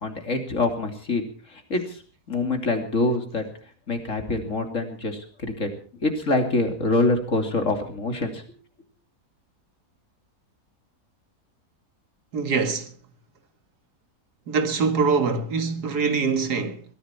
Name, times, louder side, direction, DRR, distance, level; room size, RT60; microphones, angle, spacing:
voice 1, 0.0-2.0 2.3-3.4 3.9-5.7 6.0-8.4, left 2 dB, 50° left, 3.2 m, -25 dB
voice 2, 12.3-12.9 14.5-16.8, right 5 dB, 85° right, 2.3 m, -24 dB
21.5 x 15.0 x 4.4 m
omnidirectional pair, 1.7 m